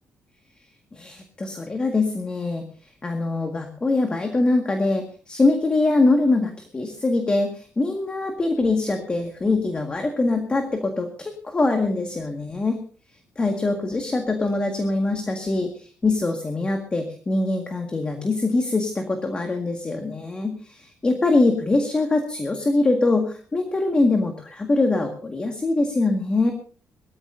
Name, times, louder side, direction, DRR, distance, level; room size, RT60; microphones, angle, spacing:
voice 1, 0.9-2.6 3.0-12.8 13.4-26.5, left 2 dB, 20° left, 4 dB, 1.8 m, -23 dB
22.0 x 14.5 x 2.7 m, 0.41 s
cardioid pair, 165°, 5 cm